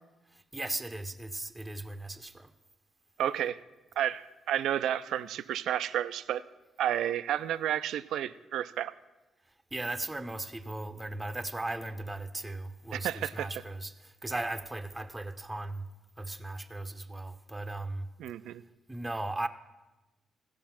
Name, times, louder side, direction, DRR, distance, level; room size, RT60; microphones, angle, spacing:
voice 1, 0.3-2.5 9.7-15.9 16.2-18.1 18.9-19.5, right 2 dB, 15° right, 0.7 m, -37 dB
voice 2, 3.2-3.6 4.0-6.4 6.8-8.9 12.9-13.5 18.2-18.6, right 11 dB, 70° right, 0.3 m, -31 dB
15.5 x 5.3 x 5.8 m
hypercardioid pair, 45°, 0 cm